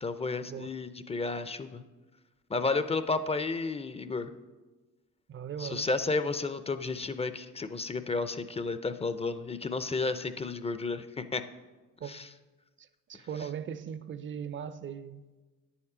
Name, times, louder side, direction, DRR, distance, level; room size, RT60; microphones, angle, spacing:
voice 1, 0.0-1.8 2.5-4.3 5.6-11.4 12.1-12.3, left 3 dB, 20° left, 0.4 m, -32 dB
voice 2, 5.3-5.9 12.0-12.3 12.8-15.4, right 8 dB, 40° right, 0.5 m, -39 dB
9.3 x 7.1 x 4.9 m
cardioid pair, 90°, 30 cm